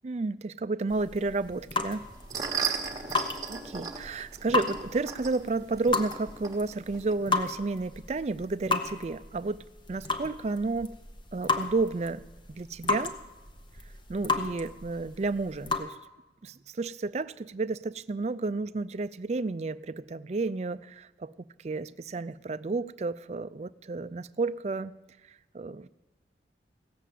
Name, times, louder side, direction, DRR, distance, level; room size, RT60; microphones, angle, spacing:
voice 1, 0.0-2.0 3.5-10.9 11.3-12.2 12.5-13.1 14.1-16.0 16.4-21.3 21.6-24.9 25.5-25.9, right 3 dB, 40° right, 14 dB, 0.4 m, -31 dB
sound 1, 0.9-15.8, left 3 dB, 25° left, 0.9 m, -34 dB
sound 2, 2.0-7.1, right 6 dB, 20° right, 1.2 m, -36 dB
16.5 x 7.5 x 8.3 m, 1.1 s
head